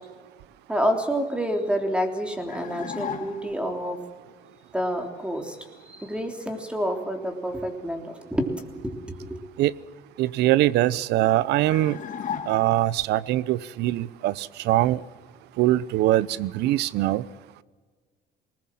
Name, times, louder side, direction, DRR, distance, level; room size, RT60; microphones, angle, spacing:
voice 1, 0.7-4.0 4.7-5.6 5.8-9.4, equal, 5° right, 4 dB, 3.3 m, -28 dB
sound 1, 2.5-3.7 11.7-13.0, left 7 dB, 50° left, 2.2 m, -35 dB
voice 2, 10.2-12.0 12.5-15.0 15.6-17.2, right 15 dB, 85° right, 20 dB, 0.7 m, -22 dB
20.0 x 20.0 x 7.6 m, 1.5 s
cardioid pair, 110°, 17 cm